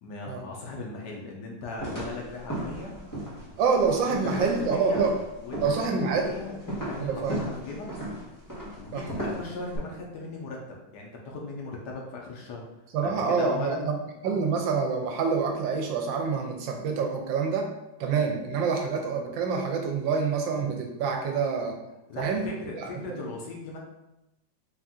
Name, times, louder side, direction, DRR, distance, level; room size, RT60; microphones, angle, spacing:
voice 1, 0.0-2.9 4.0-5.0 5.4-5.6 6.0-6.6 6.9-7.9 8.8-10.6 10.9-12.6 13.0-13.9 22.1-23.8, left 3 dB, 70° left, -1 dB, 1.2 m, -37 dB
sound 1, 1.8-9.8, right 1 dB, 15° left, 0.9 m, -36 dB
voice 2, 3.6-5.2 5.6-6.3 7.0-7.4 8.9-9.1 12.9-13.9 14.2-17.7 18.0-21.8 22.2-22.4 22.7-22.9, right 5 dB, 80° right, 2 dB, 1.4 m, -26 dB
4.2 x 2.5 x 3.6 m, 0.92 s
omnidirectional pair, 2.1 m